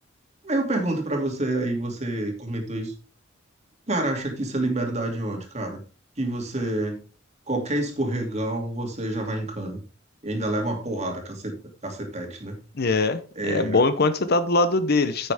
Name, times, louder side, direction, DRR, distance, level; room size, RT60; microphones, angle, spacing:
voice 1, 0.4-2.9 3.9-5.8 6.2-7.0 7.5-9.8 10.2-11.6 11.8-12.6 13.4-13.8, right 1 dB, 35° right, 2 dB, 2.7 m, -28 dB
voice 2, 12.7-15.3, left 3 dB, 55° left, 12 dB, 0.8 m, -22 dB
9.8 x 8.3 x 3.6 m, 0.34 s
head